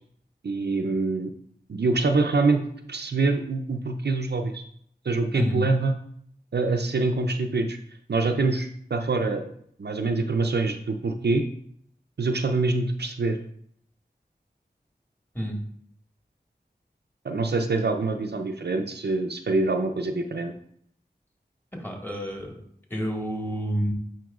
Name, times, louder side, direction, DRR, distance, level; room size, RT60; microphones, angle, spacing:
voice 1, 0.4-1.3 1.7-2.6 2.9-4.6 5.0-5.9 6.5-7.8 8.1-9.5 9.8-11.4 12.2-13.4 17.2-20.5, right 3 dB, 70° right, 5 dB, 0.5 m, -25 dB
voice 2, 21.7-22.6 22.9-23.9, equal, 10° left, -1 dB, 1.7 m, -29 dB
9.1 x 4.5 x 2.4 m, 0.65 s
wide cardioid pair, 45°, 18 cm